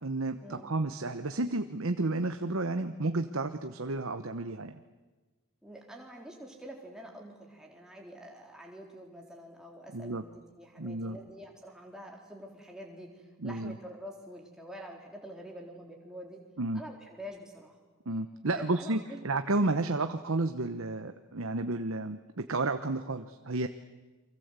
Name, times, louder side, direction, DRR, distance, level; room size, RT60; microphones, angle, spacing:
voice 1, 0.0-4.8 9.9-10.2 10.8-11.2 13.4-13.7 16.6-16.8 18.1-19.0 19.2-23.7, right 2 dB, 70° right, 8 dB, 1.0 m, -31 dB
voice 2, 5.6-16.4 16.7-17.8 18.5-19.2 19.8-19.9, equal, 5° right, 0 dB, 4.0 m, -47 dB
29.5 x 24.0 x 8.2 m, 1.3 s
head